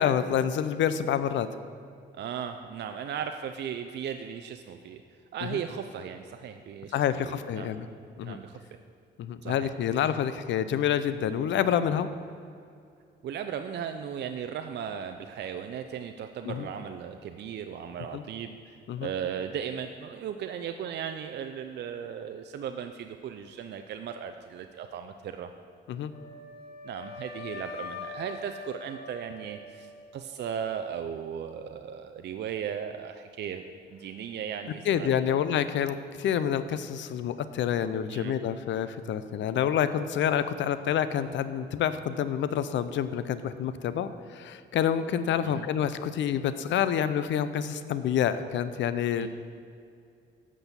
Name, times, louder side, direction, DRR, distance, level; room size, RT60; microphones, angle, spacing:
voice 1, 0.0-1.5 5.5-5.6 6.9-7.9 8.2-8.4 9.2-12.1 16.5-16.7 18.1-18.2 18.9-19.1 25.9-26.1 34.9-49.3, left 9 dB, 70° left, 12 dB, 0.5 m, -28 dB
voice 2, 2.1-5.0 5.3-7.0 7.3-7.7 8.2-8.6 9.4-9.7 11.9-12.0 13.2-25.5 26.8-33.6 33.9-35.4 38.1-38.4 45.4-45.7 49.1-49.3, right 8 dB, 60° right, 7 dB, 0.5 m, -37 dB
Wind instrument woodwind instrument, 26.1-30.2, left 3 dB, 55° left, 1.9 m, -43 dB
7.9 x 6.2 x 7.0 m, 2.4 s
cardioid pair, 90°, 20 cm